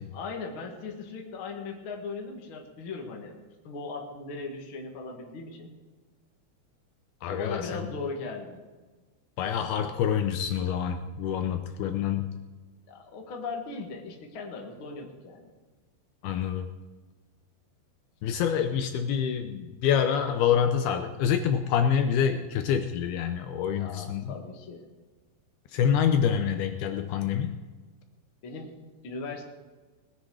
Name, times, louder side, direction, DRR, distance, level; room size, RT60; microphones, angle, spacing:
voice 1, 0.1-3.3 3.6-5.7 7.3-8.6 12.9-15.5 23.7-24.8 28.4-28.7 29.0-29.4, left 4 dB, 60° left, 1 dB, 1.3 m, -38 dB
voice 2, 7.2-7.9 9.4-12.3 16.2-16.7 18.2-24.3 25.7-27.6, left 8 dB, 80° left, 7 dB, 2.2 m, -26 dB
20.0 x 10.0 x 4.9 m, 1.3 s
omnidirectional pair, 5.4 m